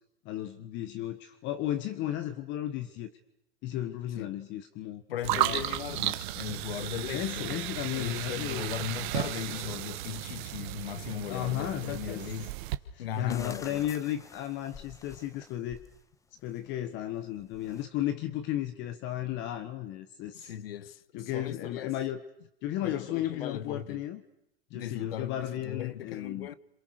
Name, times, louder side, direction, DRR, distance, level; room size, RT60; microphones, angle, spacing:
voice 1, 0.2-3.1 3.6-5.0 5.3-5.6 7.1-8.7 11.3-12.3 12.9-15.8 16.4-20.5 21.1-22.2 22.6-24.2 24.7-26.5, left 12 dB, 40° left, 1.4 m, -34 dB
voice 2, 5.1-7.5 7.9-12.5 13.0-13.9 20.3-21.9 22.8-24.0 24.7-26.5, left 10 dB, 80° left, 1.3 m, -38 dB
sound 1, 5.2-12.8, right 15 dB, 55° right, 1.6 m, -34 dB
sound 2, 12.3-12.4 13.1-16.0 16.4-16.7 17.3-17.8, left 3 dB, 10° left, 1.3 m, -48 dB
29.0 x 27.0 x 6.6 m
hypercardioid pair, 125°, 29 cm